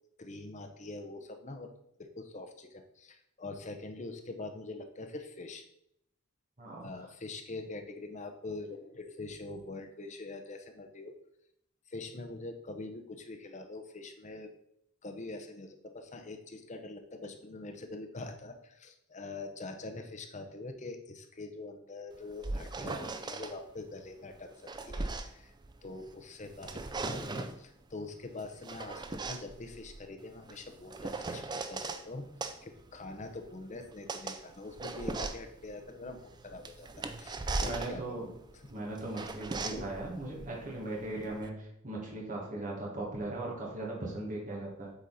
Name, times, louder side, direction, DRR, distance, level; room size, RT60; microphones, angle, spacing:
voice 1, 0.2-1.7 2.0-5.6 6.8-11.1 11.9-14.5 15.0-24.5 24.8-25.5 25.8-32.2 32.6-36.9 37.1-38.2 39.7-39.8, left 2 dB, 35° left, 5 dB, 0.7 m, -44 dB
voice 2, 6.6-6.9 37.6-38.3 38.7-44.9, right 2 dB, 35° right, -3 dB, 1.8 m, -38 dB
sound 1, 22.1-23.5 24.3-26.1 26.5-27.6 28.4-32.0 32.4-41.5, right 3 dB, 20° right, 0.4 m, -39 dB
8.0 x 4.2 x 4.0 m, 0.78 s
head